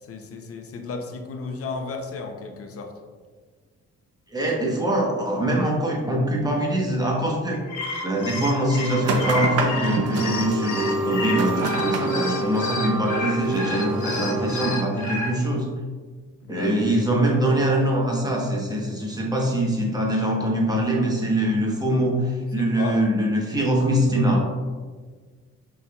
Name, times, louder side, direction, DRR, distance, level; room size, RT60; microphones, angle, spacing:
voice 1, 0.0-2.9 16.4-16.7 18.8-19.0 22.6-23.0, left 4 dB, 50° left, 4 dB, 0.7 m, -34 dB
voice 2, 4.3-7.6 8.0-15.7 16.5-24.4, right 1 dB, 15° right, -2 dB, 1.0 m, -23 dB
sound 1, 7.5-15.3, left 3 dB, 80° left, 1.0 m, -31 dB
sound 2, 9.0-14.8, right 3 dB, 55° right, 0.7 m, -27 dB
5.4 x 3.3 x 2.3 m, 1.5 s
cardioid pair, 90°, 30 cm